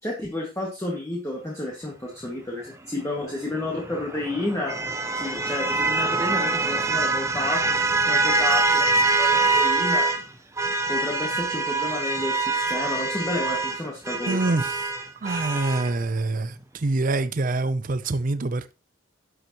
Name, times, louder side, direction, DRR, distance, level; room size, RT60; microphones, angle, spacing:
voice 1, 0.0-4.8 5.2-10.1 10.9-14.6, left 1 dB, 15° left, 1.9 m, -31 dB
sound 1, 3.6-10.2 10.6-15.9, right 3 dB, 15° right, 0.8 m, -24 dB
voice 2, 14.3-14.6 15.2-16.5 16.8-18.7, right 2 dB, 40° right, 0.5 m, -25 dB
11.5 x 7.3 x 3.0 m
head